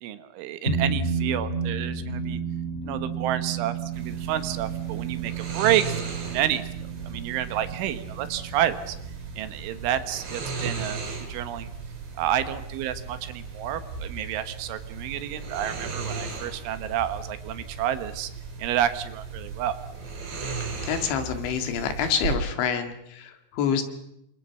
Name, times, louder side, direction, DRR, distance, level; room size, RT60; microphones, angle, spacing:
voice 1, 0.0-2.4 2.8-5.9 6.3-6.7 7.0-9.0 9.4-11.0 11.3-11.7 12.2-18.3 18.6-19.8, right 11 dB, 75° right, 10 dB, 3.7 m, -29 dB
sound 1, 0.7-11.3, right 5 dB, 15° left, 4.4 m, -32 dB
sound 2, 3.9-22.3, right 4 dB, 60° right, 7.6 m, -36 dB
voice 2, 20.8-23.8, left 7 dB, 70° left, 7 dB, 4.2 m, -27 dB
28.5 x 25.0 x 5.8 m, 0.82 s
omnidirectional pair, 5.7 m